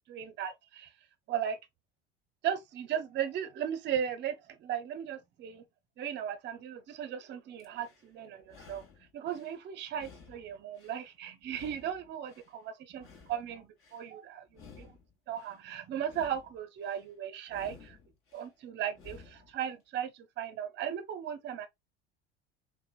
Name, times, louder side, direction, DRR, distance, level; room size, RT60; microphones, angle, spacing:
voice 1, 0.1-0.9 1.3-1.6 2.4-5.6 6.0-8.8 9.1-14.4 14.8-14.9 15.3-18.0 18.3-21.7, right 9 dB, 35° right, 0.5 m, -37 dB
sound 1, 7.6-8.1 8.4-9.6 9.9-11.1 11.4-12.5 12.9-14.0 14.5-15.6 16.0-17.1 17.5-18.5 18.9-19.6, left 5 dB, 45° left, 1.1 m, -55 dB
2.9 x 2.1 x 2.3 m
hypercardioid pair, 75°, 30 cm